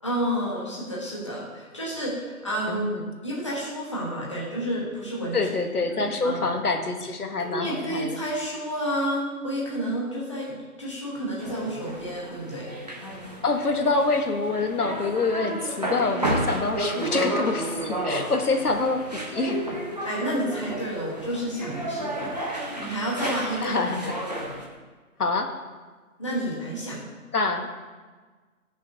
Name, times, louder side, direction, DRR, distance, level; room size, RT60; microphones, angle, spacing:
voice 1, 0.0-2.9 3.2-5.5 5.9-6.4 7.4-12.7 20.0-22.3 22.8-23.9 26.2-27.0, equal, 20° left, -5 dB, 1.3 m, -30 dB
voice 2, 2.7-3.1 5.3-8.2 13.4-19.6 23.6-24.1 25.2-25.5 27.3-27.7, left 3 dB, 85° left, 5 dB, 1.3 m, -26 dB
sound 1, 11.4-24.6, right 1 dB, 30° right, 0.9 m, -32 dB
14.5 x 6.3 x 2.7 m, 1.4 s
figure-of-eight pair, 175°, 44 cm